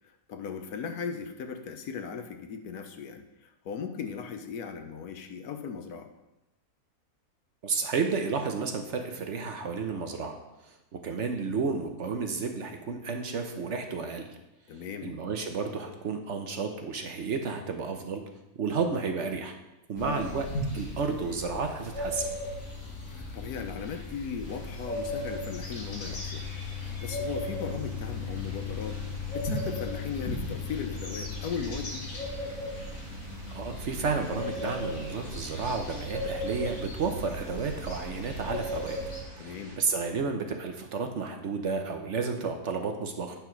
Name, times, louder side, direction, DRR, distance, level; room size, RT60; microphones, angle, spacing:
voice 1, 0.3-6.1 14.7-15.1 19.9-20.4 23.1-26.5 26.8-32.1 39.4-39.8, left 6 dB, 80° left, 7 dB, 1.4 m, -37 dB
voice 2, 7.6-10.4 10.6-14.3 15.0-18.2 18.5-19.5 19.9-20.5 20.7-22.3 33.5-39.0 39.4-43.3, right 4 dB, 55° right, 4 dB, 1.0 m, -32 dB
sound 1, 20.0-39.2, left 2 dB, 65° left, 2.3 m, -36 dB
sound 2, 24.4-39.8, right 1 dB, 35° right, 1.7 m, -49 dB
9.1 x 4.6 x 5.8 m, 0.93 s
omnidirectional pair, 1.6 m